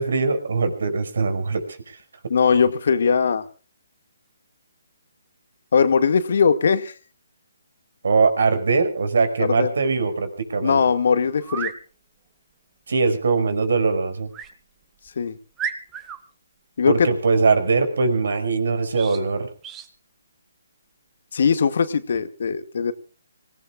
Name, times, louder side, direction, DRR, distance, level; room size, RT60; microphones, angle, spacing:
voice 1, 0.0-2.0 8.0-10.8 12.9-14.3 16.9-19.5, right 4 dB, 70° right, 9 dB, 5.8 m, -21 dB
voice 2, 2.3-3.4 5.7-6.9 9.4-9.7 10.6-11.7 15.2-15.4 16.8-17.1 21.3-22.9, left 6 dB, 60° left, 10 dB, 2.1 m, -20 dB
sound 1, 11.4-11.8 14.3-14.5 15.1-15.2 15.6-16.2 18.9-19.2 19.6-19.9, right 7 dB, 15° right, 2.0 m, -32 dB
25.5 x 18.0 x 2.5 m, 0.36 s
figure-of-eight pair, 145°, 0 cm